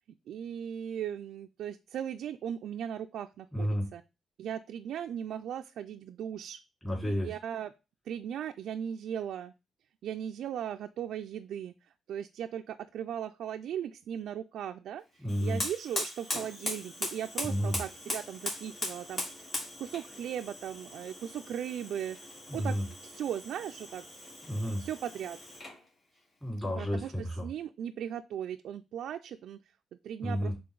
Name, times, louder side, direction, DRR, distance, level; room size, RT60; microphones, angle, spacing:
voice 1, 0.3-4.0 4.4-6.6 7.0-7.7 8.1-9.5 10.0-11.7 12.1-15.0 15.4-19.5 19.8-22.2 22.5-22.7 23.0-24.0 24.8-25.4 26.8-27.1 27.4-29.6 30.0-30.5, right 9 dB, 75° right, 5 dB, 0.4 m, -37 dB
voice 2, 3.5-3.9 6.8-7.4 15.2-15.6 17.4-17.8 22.5-22.9 24.4-24.9 26.4-27.5 30.2-30.6, equal, 15° left, -2 dB, 4.2 m, -31 dB
Fire, 15.3-25.8, left 1 dB, 40° left, 3.2 m, -40 dB
6.6 x 3.9 x 3.9 m, 0.28 s
cardioid pair, 110°, 0 cm